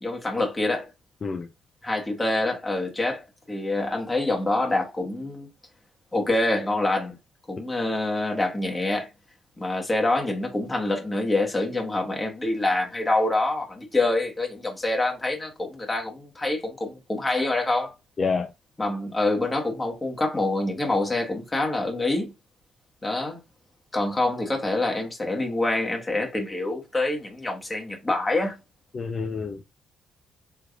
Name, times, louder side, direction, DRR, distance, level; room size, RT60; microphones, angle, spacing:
voice 1, 0.0-0.9 1.8-5.5 6.1-7.2 7.5-9.1 9.6-17.9 18.8-22.3 23.0-23.4 23.9-28.6, left 2 dB, 20° left, 1.2 m, -26 dB
voice 2, 18.2-18.5 28.9-29.6, left 4 dB, 40° left, 0.5 m, -28 dB
3.4 x 3.1 x 2.3 m
cardioid pair, 90°, 0 cm